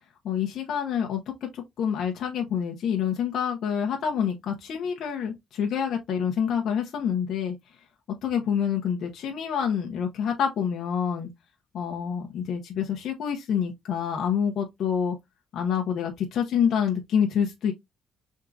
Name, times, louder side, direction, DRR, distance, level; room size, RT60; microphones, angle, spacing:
voice 1, 0.2-7.6 8.2-11.3 11.7-15.2 15.5-17.7, left 8 dB, 60° left, 1.0 m, -27 dB
5.4 x 3.6 x 2.6 m
cardioid pair, 150°, 0 cm